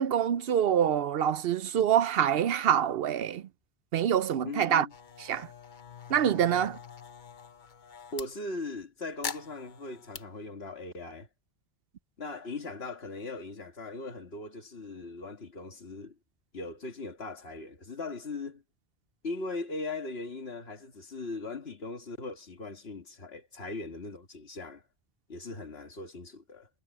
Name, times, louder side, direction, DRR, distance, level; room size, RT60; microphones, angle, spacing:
voice 1, 0.0-3.4 3.9-4.9 5.2-5.5 6.1-6.8, right 9 dB, 70° right, 0.8 m, -26 dB
voice 2, 4.4-4.9 8.1-11.3 12.2-16.2 16.5-18.6 19.2-24.8 25.3-26.7, left 3 dB, 70° left, 2.1 m, -39 dB
sound 1, 4.9-8.3 9.2-10.2, left 6 dB, 50° left, 1.0 m, -43 dB
omnidirectional pair, 1.1 m